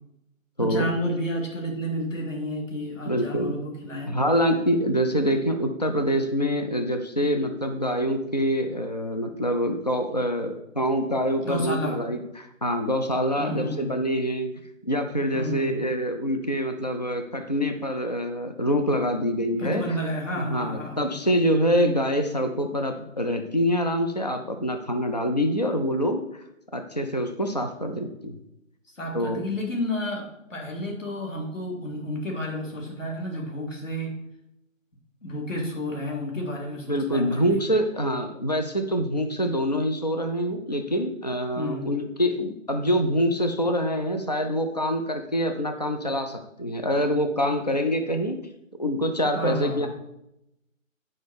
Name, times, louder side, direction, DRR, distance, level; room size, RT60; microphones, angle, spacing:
voice 1, 0.6-4.1 11.4-12.0 13.4-13.8 15.3-15.9 19.6-21.1 29.0-34.1 35.2-37.6 41.5-41.9 49.3-49.9, equal, 65° left, -1 dB, 3.9 m, -31 dB
voice 2, 3.1-3.5 4.1-14.5 14.8-19.8 20.4-26.2 26.7-28.4 29.1-29.4 36.9-48.4 48.8-49.9, equal, 30° left, 5 dB, 0.6 m, -25 dB
8.7 x 5.2 x 6.8 m, 0.84 s
figure-of-eight pair, 170°, 41 cm